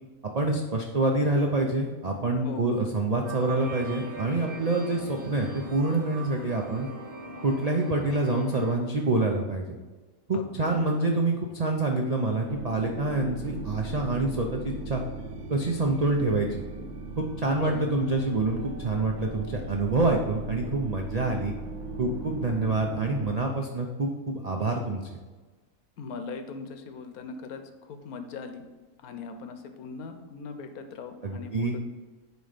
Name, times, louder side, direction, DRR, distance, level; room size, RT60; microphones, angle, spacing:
voice 1, 0.3-6.9 7.4-9.8 10.3-15.0 15.5-16.6 17.2-21.5 22.0-25.1 31.2-31.8, right 2 dB, 60° right, 1 dB, 0.4 m, -27 dB
sound 1, 3.2-8.7, right 2 dB, 35° right, 1.7 m, -41 dB
voice 2, 10.3-11.0 17.6-17.9 26.0-28.6 29.0-31.8, left 4 dB, 75° left, 7 dB, 1.2 m, -40 dB
sound 2, 12.5-23.4, right 2 dB, 80° right, 1.3 m, -38 dB
9.2 x 3.1 x 5.0 m, 1.3 s
omnidirectional pair, 1.6 m